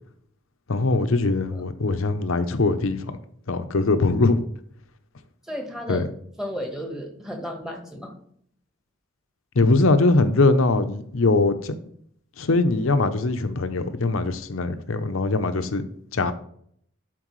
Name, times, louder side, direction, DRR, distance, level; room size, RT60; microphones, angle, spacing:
voice 1, 0.7-3.1 3.5-4.4 5.9-6.1 9.6-11.7 12.4-15.8 16.1-16.3, left 3 dB, 75° left, 10 dB, 0.7 m, -21 dB
voice 2, 5.5-6.1 6.4-8.1, equal, 5° right, 2 dB, 1.2 m, -33 dB
11.0 x 4.5 x 3.2 m, 0.66 s
head